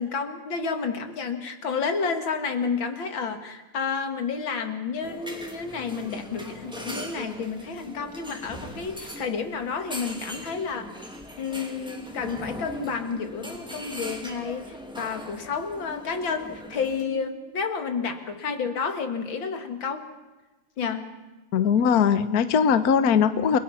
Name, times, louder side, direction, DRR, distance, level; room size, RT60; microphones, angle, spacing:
voice 1, 0.0-10.9 11.4-20.1 20.8-21.1, left 5 dB, 85° left, 6 dB, 2.7 m, -30 dB
sound 1, 5.0-17.0, equal, ahead, 2.3 m, -40 dB
voice 2, 21.5-23.6, left 7 dB, 55° left, 11 dB, 1.4 m, -20 dB
30.0 x 20.5 x 5.7 m, 1.2 s
omnidirectional pair, 2.1 m